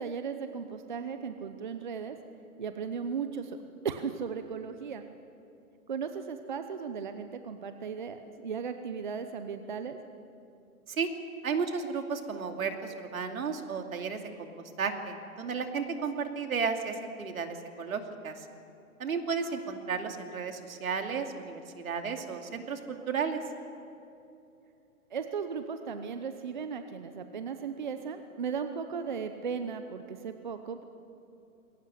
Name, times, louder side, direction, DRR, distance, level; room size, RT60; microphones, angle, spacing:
voice 1, 0.0-2.2 2.6-3.6 3.8-5.0 5.9-10.0 25.1-30.8, right 6 dB, 35° right, 8 dB, 0.7 m, -36 dB
voice 2, 11.4-14.5 14.8-18.5 19.0-23.4, right 5 dB, 70° right, 5 dB, 2.7 m, -33 dB
21.5 x 18.0 x 9.9 m, 2.7 s
hypercardioid pair, 175°, 43 cm